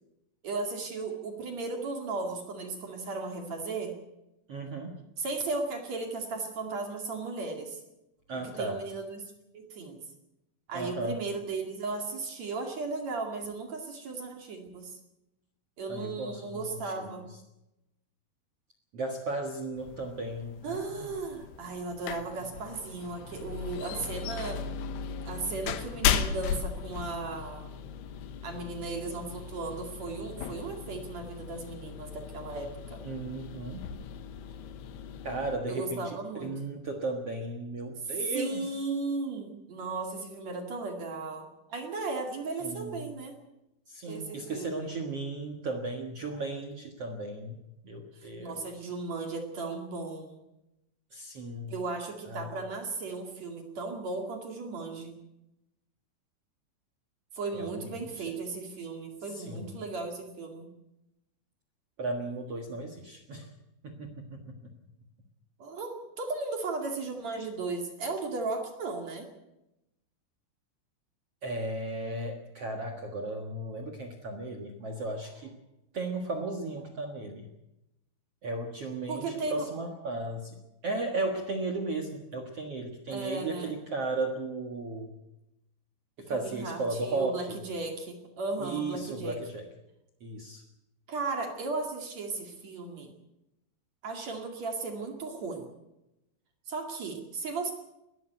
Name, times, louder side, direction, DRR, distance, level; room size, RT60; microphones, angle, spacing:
voice 1, 0.4-3.9 5.2-7.8 8.3-10.0 10.7-15.0 15.8-17.3 20.6-24.6 25.2-27.7 28.4-33.0 35.7-36.5 38.3-43.3 44.1-44.7 48.1-50.4 51.7-55.2 57.3-60.7 65.6-69.3 79.1-79.7 83.1-83.7 86.3-89.4 91.1-93.1 94.0-95.7 96.7-97.7, right 3 dB, 45° right, 3 dB, 2.8 m, -36 dB
voice 2, 4.5-5.0 8.3-8.8 10.7-11.2 15.9-17.2 18.9-21.1 33.0-33.8 35.2-38.6 42.6-43.1 43.9-48.7 51.1-51.7 52.2-52.5 57.5-58.3 59.3-59.7 62.0-63.5 63.8-64.7 71.4-75.5 75.9-77.5 78.4-80.6 80.8-85.1 86.2-87.6 88.6-89.7 90.2-90.6, right 2 dB, 80° right, 3 dB, 1.3 m, -35 dB
sound 1, 19.8-35.6, left 8 dB, 70° left, 2.8 m, -37 dB
20.5 x 13.5 x 9.2 m, 0.91 s
omnidirectional pair, 5.5 m